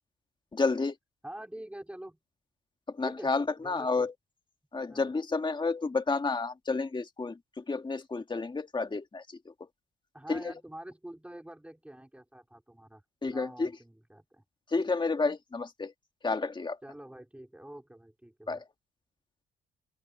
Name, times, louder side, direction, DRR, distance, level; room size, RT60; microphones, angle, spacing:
voice 1, 0.5-1.0 2.9-4.1 4.7-9.5 10.3-10.4 13.2-13.7 14.7-15.9 16.2-16.8 18.5-18.6, left 3 dB, 25° left, 2.3 m, -30 dB
voice 2, 1.2-2.2 3.0-3.3 3.6-4.1 4.9-5.0 10.1-14.4 16.8-18.6, right 1 dB, 5° right, 5.1 m, -46 dB
open air
cardioid pair, 90°, 20 cm